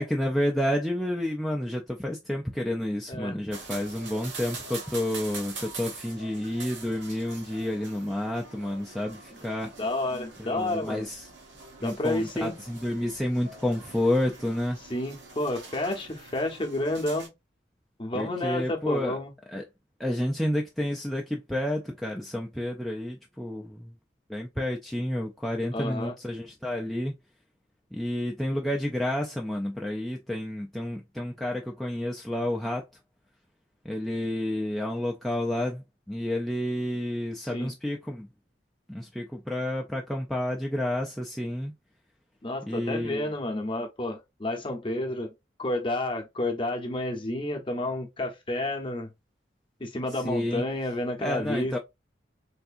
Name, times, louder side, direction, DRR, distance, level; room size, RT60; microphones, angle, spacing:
voice 1, 0.0-9.7 10.4-11.3 11.8-14.8 18.1-19.2 19.5-19.6 20.0-24.0 24.3-27.1 27.9-32.8 33.8-38.3 38.9-41.7 42.6-43.3 50.1-50.6 51.2-51.8, left 1 dB, ahead, 0.3 m, -30 dB
sound 1, 3.5-17.3, right 3 dB, 85° right, 1.2 m, -44 dB
voice 2, 9.8-11.0 11.8-12.6 14.9-17.3 18.0-19.3 25.7-26.1 37.5-37.7 42.4-45.3 45.6-49.1 49.8-51.8, left 1 dB, 30° left, 0.7 m, -30 dB
3.4 x 2.6 x 2.4 m
head